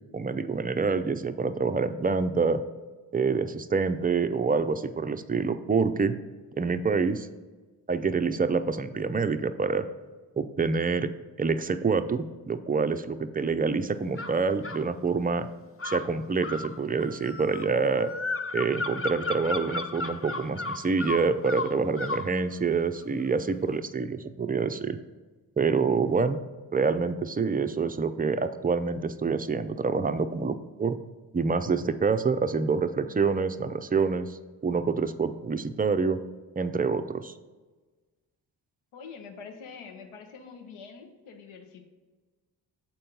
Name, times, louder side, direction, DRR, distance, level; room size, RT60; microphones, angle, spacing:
voice 1, 0.1-2.6 3.1-6.2 6.6-7.3 7.9-9.9 10.4-11.1 11.4-15.5 15.8-18.1 18.5-25.0 25.6-26.4 26.7-31.0 31.3-36.2 36.6-37.3, right 4 dB, 20° right, 10 dB, 0.4 m, -27 dB
sound 1, 14.2-14.9 15.8-22.3, left 3 dB, 25° left, 0.7 m, -34 dB
voice 2, 38.9-41.9, left 5 dB, 75° left, 5 dB, 1.0 m, -45 dB
7.1 x 4.4 x 5.3 m, 1.3 s
supercardioid pair, 45°, 50 cm